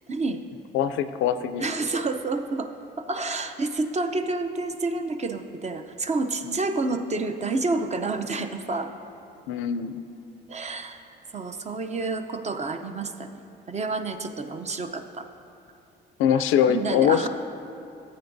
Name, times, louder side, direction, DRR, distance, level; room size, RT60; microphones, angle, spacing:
voice 1, 0.1-0.4 1.5-2.7 3.0-8.9 10.5-11.1 11.3-13.3 13.7-15.3 16.7-17.3, right 3 dB, 35° right, 7 dB, 0.6 m, -29 dB
voice 2, 0.7-1.6 6.4-6.6 9.5-10.0 16.2-17.3, left 9 dB, 90° left, 11 dB, 0.4 m, -23 dB
14.5 x 8.6 x 2.7 m, 2.8 s
cardioid pair, 90°, 20 cm